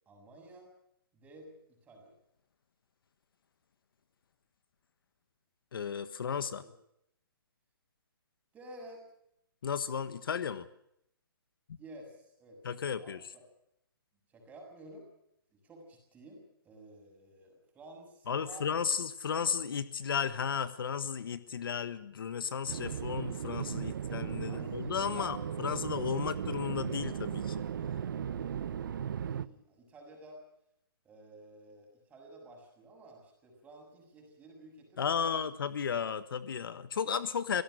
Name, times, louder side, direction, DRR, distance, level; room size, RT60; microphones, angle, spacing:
voice 1, 0.1-0.7 1.1-2.2 6.6-6.7 8.5-9.0 11.8-12.6 13.0-13.4 14.3-15.0 15.5-18.7 24.4-25.6 29.1-30.4 31.0-35.5, right 1 dB, 10° right, 2 dB, 7.1 m, -52 dB
voice 2, 5.7-6.6 9.6-10.7 11.7-11.8 12.6-13.3 18.3-27.6 35.0-37.6, left 7 dB, 65° left, 13 dB, 1.4 m, -34 dB
sound 1, 22.7-29.5, right 8 dB, 60° right, 1.0 m, -37 dB
25.0 x 18.0 x 6.5 m, 0.76 s
hypercardioid pair, 155°, 13 cm